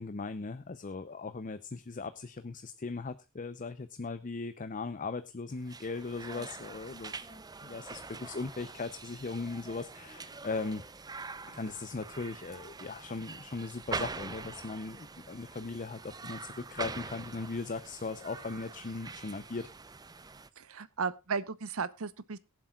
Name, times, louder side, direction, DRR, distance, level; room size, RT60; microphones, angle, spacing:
voice 1, 0.0-10.8 11.5-19.7, left 3 dB, 40° left, 0.6 m, -38 dB
sound 1, 5.5-20.5, right 4 dB, 20° right, 0.6 m, -44 dB
voice 2, 20.6-22.4, right 5 dB, 90° right, 0.8 m, -35 dB
22.5 x 7.5 x 2.4 m
head